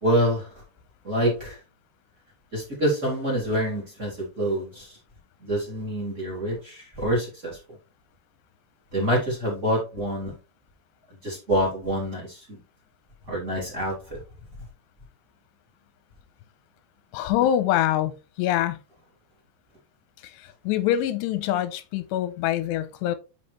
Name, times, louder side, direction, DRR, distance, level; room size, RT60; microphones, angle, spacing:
voice 1, 0.0-0.4 1.0-1.5 2.5-4.9 5.4-7.5 8.9-10.3 11.2-12.3 13.3-13.9, equal, 20° right, 2.7 m, -26 dB
voice 2, 17.1-18.8 20.7-23.2, left 12 dB, 90° left, 2.8 m, -24 dB
8.7 x 5.6 x 3.2 m
omnidirectional pair, 5.0 m